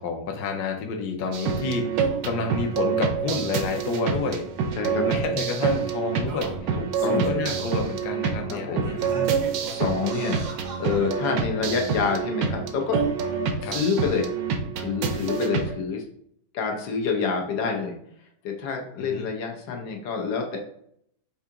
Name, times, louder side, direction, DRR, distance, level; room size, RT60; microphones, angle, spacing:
voice 1, 0.0-4.5 4.9-9.4 13.6-13.8 19.0-19.3, left 4 dB, 70° left, 2 dB, 1.2 m, -30 dB
sound 1, 1.3-15.7, right 6 dB, 70° right, 0.9 m, -27 dB
Singing, 4.4-4.5 5.5-5.6 6.2-7.8 8.3-8.4 8.8-11.4 12.2-12.3, right 3 dB, 90° right, 1.5 m, -40 dB
voice 2, 4.8-5.3 7.0-7.5 8.5-8.9 9.6-10.4 10.8-13.0 13.6-14.3 14.7-16.0 16.5-18.0 18.4-20.6, left 5 dB, 90° left, 2 dB, 1.5 m, -27 dB
4.7 x 2.8 x 3.5 m, 0.68 s
omnidirectional pair, 1.9 m